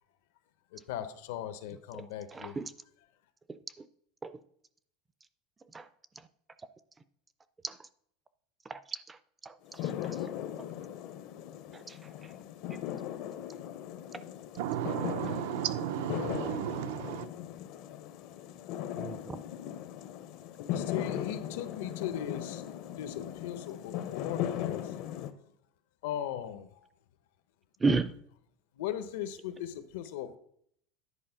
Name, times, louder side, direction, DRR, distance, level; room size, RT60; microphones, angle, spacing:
voice 1, 0.7-2.6 20.7-22.6 22.9-24.9 26.0-26.7 28.8-30.4, left 10 dB, 80° left, 0.8 m, -38 dB
voice 2, 2.3-2.7 3.5-3.6 4.2-4.4 5.7-5.9 7.6-7.8 8.7-8.8 9.1-9.2 9.4-10.2 11.7-12.0 12.7-12.8 19.0-19.4 27.8-28.1, right 3 dB, 10° right, 0.4 m, -33 dB
sound 1, 9.6-25.3, left 11 dB, 50° left, 0.6 m, -38 dB
voice 3, 14.6-17.3, right 11 dB, 75° right, 0.5 m, -34 dB
10.0 x 4.4 x 5.7 m
supercardioid pair, 165°, 0 cm